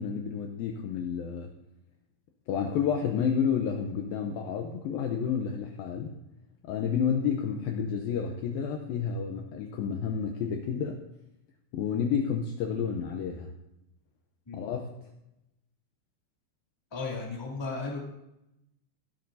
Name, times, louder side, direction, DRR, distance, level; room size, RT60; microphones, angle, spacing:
voice 1, 0.0-1.5 2.5-6.2 6.6-11.0 11.7-13.5 14.5-14.9, left 7 dB, 80° left, 3 dB, 2.2 m, -30 dB
voice 2, 16.9-18.0, left 3 dB, 10° left, -2 dB, 1.4 m, -35 dB
18.5 x 12.5 x 2.7 m, 0.88 s
omnidirectional pair, 5.0 m